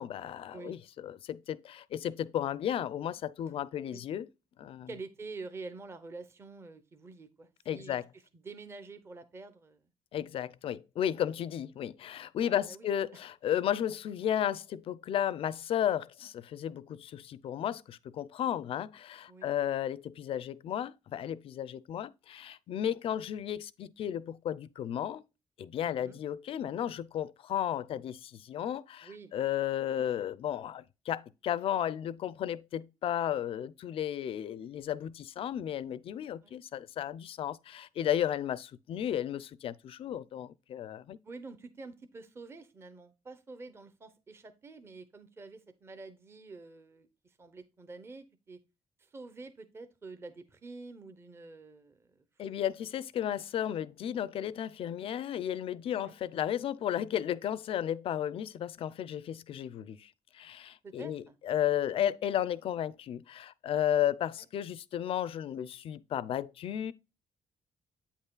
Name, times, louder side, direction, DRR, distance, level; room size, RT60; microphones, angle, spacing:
voice 1, 0.0-4.3 4.6-4.9 7.7-8.1 10.1-25.2 25.6-41.2 52.4-66.9, left 10 dB, 55° left, 0.4 m, -34 dB
voice 2, 4.9-8.0 8.3-9.8 12.4-12.9 19.3-19.5 25.8-26.2 29.0-29.3 36.4-36.6 41.2-48.6 49.0-52.2 55.9-56.2 60.8-61.3 64.3-64.4, right 3 dB, 25° right, 0.7 m, -47 dB
8.6 x 5.5 x 2.2 m
cardioid pair, 140°, 11 cm